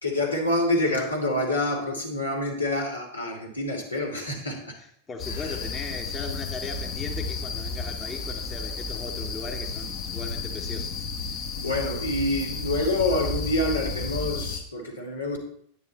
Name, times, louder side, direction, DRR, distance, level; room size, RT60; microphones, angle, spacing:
voice 1, 0.0-4.8 5.3-5.6 11.6-15.4, left 1 dB, 80° left, 0 dB, 2.7 m, -27 dB
voice 2, 5.1-11.1, left 4 dB, 20° left, 3 dB, 1.3 m, -38 dB
sound 1, 5.2-14.6, left 4 dB, 40° left, 1.3 m, -32 dB
10.0 x 9.8 x 4.2 m, 0.66 s
figure-of-eight pair, 90°, 0 cm